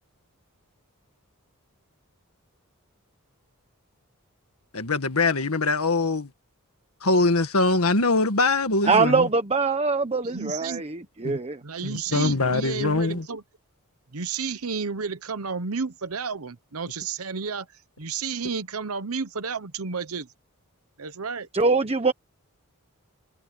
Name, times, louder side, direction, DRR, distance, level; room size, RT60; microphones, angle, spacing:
voice 1, 4.7-6.3 7.0-9.3 11.2-11.4 11.8-13.2, left 3 dB, 70° left, 1.8 m, -23 dB
voice 2, 8.8-11.6 21.5-22.1, right 4 dB, 25° right, 1.1 m, -23 dB
voice 3, 10.2-10.8 11.6-13.4 14.1-17.7 18.0-20.3 21.0-21.5, right 5 dB, 70° right, 1.0 m, -31 dB
head